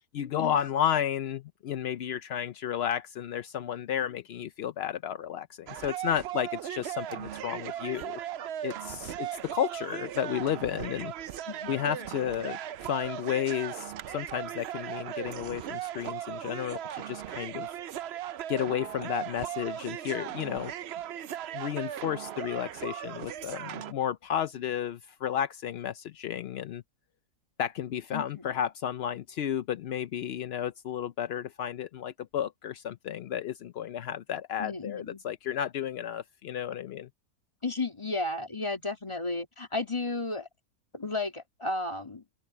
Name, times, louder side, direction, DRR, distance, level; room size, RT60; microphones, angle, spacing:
voice 1, 0.1-8.2 8.6-11.1 11.7-17.7 18.5-20.7 21.5-26.8 27.6-37.1, left 10 dB, 65° left, 0.6 m, -32 dB
niech plona znicze dwaaaa, 5.7-23.9, right 11 dB, 65° right, 0.6 m, -38 dB
voice 2, 11.5-11.9 28.1-28.4 34.6-35.2 37.6-40.5 40.9-42.2, left 2 dB, 20° left, 2.5 m, -33 dB
open air
omnidirectional pair, 1.6 m